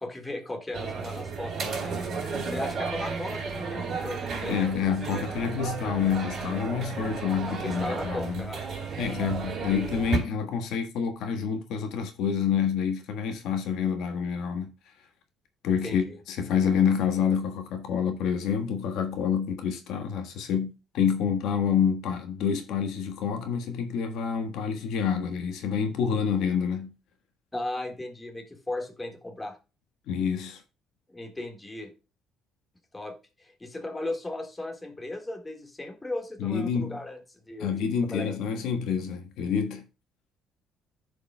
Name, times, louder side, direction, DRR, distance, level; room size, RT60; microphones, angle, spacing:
voice 1, 0.0-2.0 2.4-4.6 7.8-8.6 9.7-9.8 15.7-16.2 27.5-29.6 31.1-31.9 32.9-33.1 33.4-37.2 37.5-37.9 38.1-38.3, left 2 dB, 10° left, 1.7 m, -36 dB
sound 1, 0.7-10.2, right 5 dB, 40° right, 3.9 m, -33 dB
voice 2, 4.5-8.5 9.0-14.7 15.6-26.9 30.1-30.6 36.4-37.0 37.6-39.8, left 7 dB, 75° left, 1.4 m, -28 dB
15.0 x 5.1 x 2.2 m
cardioid pair, 140°, 0 cm